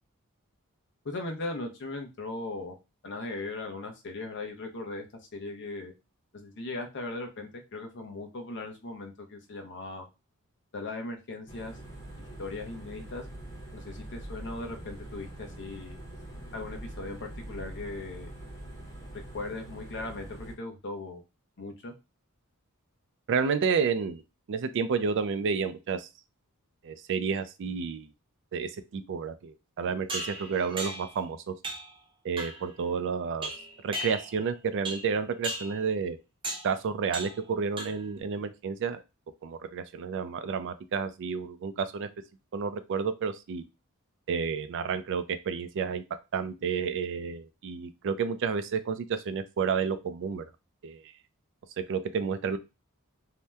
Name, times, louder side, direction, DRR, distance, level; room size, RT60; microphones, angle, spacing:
voice 1, 1.0-2.7 3.0-5.1 5.3-5.9 6.3-10.1 10.7-11.7 12.4-13.2 13.7-16.0 16.5-18.3 19.3-21.2 21.6-21.9, left 2 dB, 55° left, 4 dB, 0.7 m, -38 dB
sound 1, 11.5-20.5, right 1 dB, 15° left, 0.9 m, -43 dB
voice 2, 23.3-24.2 24.5-26.1 26.8-28.1 28.5-31.5 32.2-33.5 33.8-36.2 36.6-39.0 39.4-42.1 42.5-43.6 44.3-46.0 46.3-50.5 50.8-51.0 51.9-52.6, right 6 dB, 55° right, 11 dB, 0.4 m, -30 dB
sound 2, 30.1-31.2 31.6-32.0 32.4-32.7 33.4-34.5 34.9-35.2 35.4-35.8 36.4-36.7 37.1-37.5 37.8-38.2, right 1 dB, 25° right, 0.7 m, -37 dB
2.7 x 2.1 x 3.3 m, 0.26 s
head